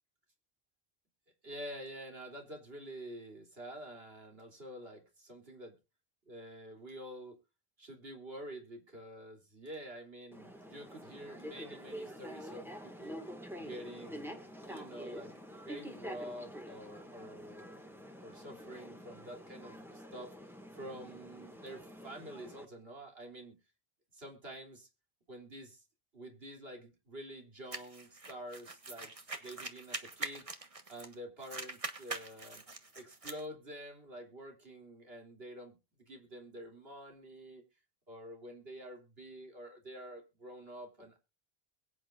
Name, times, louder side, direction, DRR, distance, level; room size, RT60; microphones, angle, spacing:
voice 1, 1.4-5.8 6.3-7.4 7.8-13.2 13.6-15.3 15.6-17.8 18.2-23.6 24.1-24.9 25.3-25.8 26.1-29.1 29.4-30.5 30.9-32.6 32.9-35.8 36.1-37.6 38.1-41.2, right 1 dB, 75° right, 2 dB, 3.5 m, -48 dB
sound 1, 10.3-22.7, equal, ahead, 1.8 m, -47 dB
sound 2, 27.7-31.1 31.4-33.4, right 3 dB, 35° right, 1.5 m, -43 dB
22.5 x 8.8 x 2.5 m, 0.28 s
omnidirectional pair, 1.0 m